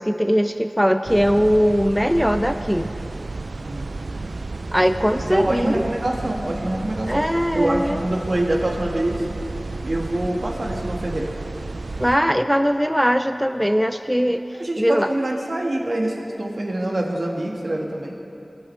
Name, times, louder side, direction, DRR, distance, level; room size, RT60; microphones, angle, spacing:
voice 1, 0.0-2.9 4.7-5.7 7.1-8.0 12.0-14.4 14.8-15.1, equal, ahead, 8 dB, 0.3 m, -20 dB
sound 1, 1.0-12.2, right 3 dB, 80° right, 0.3 m, -32 dB
voice 2, 3.6-3.9 5.2-7.2 7.5-9.2 9.8-11.3 14.6-18.1, right 1 dB, 65° right, -1 dB, 1.5 m, -25 dB
19.5 x 8.7 x 3.2 m, 2.7 s
wide cardioid pair, 55°, 0 cm